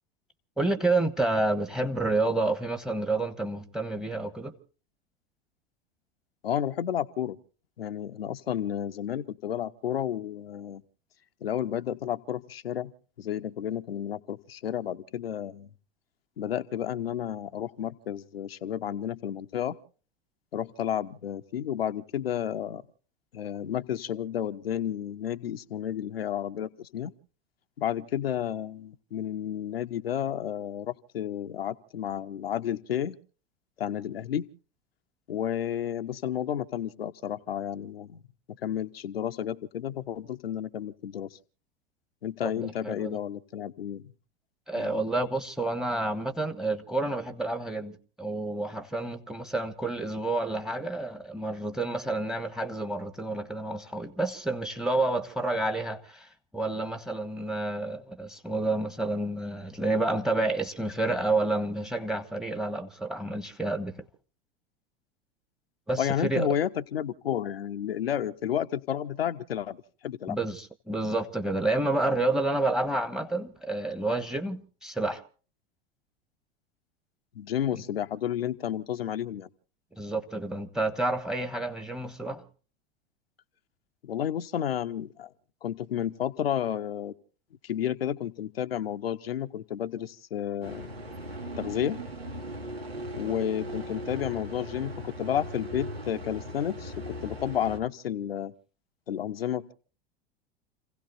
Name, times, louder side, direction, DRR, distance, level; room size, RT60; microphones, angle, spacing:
voice 1, 0.6-4.5 42.4-43.2 44.7-47.9 48.2-64.0 65.9-66.5 70.3-75.2 80.0-82.4, right 2 dB, ahead, 1.3 m, -29 dB
voice 2, 6.4-7.4 7.8-10.8 11.4-12.9 13.2-15.7 16.4-19.8 20.5-22.8 23.3-27.1 27.8-33.2 33.8-34.5 35.3-38.2 38.6-41.4 42.2-44.0 44.8-44.9 66.0-70.4 77.3-79.5 84.0-85.3 85.6-87.1 87.6-90.9 91.6-92.0 93.1-96.9 97.2-98.5 99.1-99.7, left 10 dB, 75° left, 0.8 m, -31 dB
sound 1, 90.6-97.8, equal, 80° right, 2.5 m, -38 dB
29.5 x 16.5 x 2.6 m
figure-of-eight pair, 85°, 30 cm